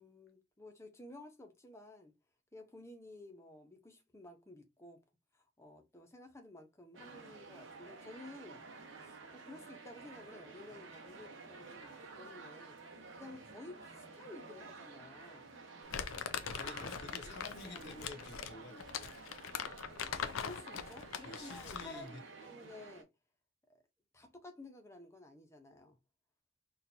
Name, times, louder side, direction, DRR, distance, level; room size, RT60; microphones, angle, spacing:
voice 1, 0.0-2.1 2.5-5.0 5.3-8.6 9.0-15.5 16.6-16.8 17.2-18.0 20.3-23.1 23.7-23.8 24.1-26.0, left 2 dB, 15° left, 0.8 m, -53 dB
sound 1, 6.9-23.0, right 4 dB, 65° right, 0.9 m, -52 dB
Crumpling crinkling, 15.9-22.0, left 7 dB, 75° left, 0.4 m, -42 dB
voice 2, 16.5-19.1 21.2-22.2, left 2 dB, 60° left, 1.0 m, -50 dB
4.3 x 2.5 x 2.7 m
head